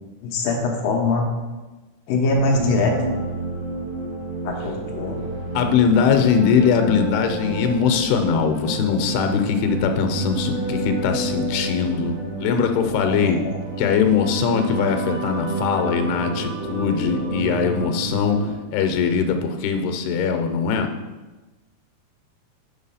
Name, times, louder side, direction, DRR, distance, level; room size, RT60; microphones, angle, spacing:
voice 1, 0.2-1.3 2.1-2.9 4.4-5.2 13.1-13.4, left 3 dB, 70° left, 1 dB, 2.5 m, -22 dB
sound 1, 2.3-18.5, right 2 dB, 65° right, 4.2 m, -29 dB
voice 2, 5.5-13.4 13.8-18.4 18.7-20.9, left 6 dB, 90° left, 6 dB, 2.8 m, -21 dB
8.4 x 4.0 x 5.6 m, 1.2 s
omnidirectional pair, 4.5 m